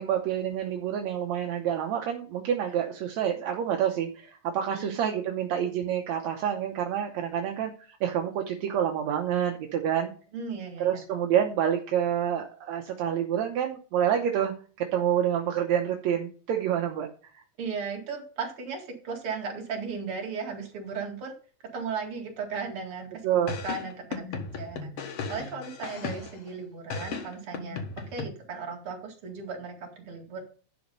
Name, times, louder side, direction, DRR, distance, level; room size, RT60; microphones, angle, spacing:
voice 1, 0.0-10.1 10.8-17.1 17.3-17.4 23.2-23.5, right 9 dB, 75° right, 3 dB, 2.2 m, -28 dB
voice 2, 10.3-11.0 17.6-21.3 21.7-27.8 28.1-30.4, right 5 dB, 50° right, 1 dB, 3.0 m, -36 dB
sound 1, 23.5-26.5 26.9-28.3, left 4 dB, 60° left, 2.4 m, -36 dB
11.0 x 5.2 x 5.3 m, 0.39 s
omnidirectional pair, 3.3 m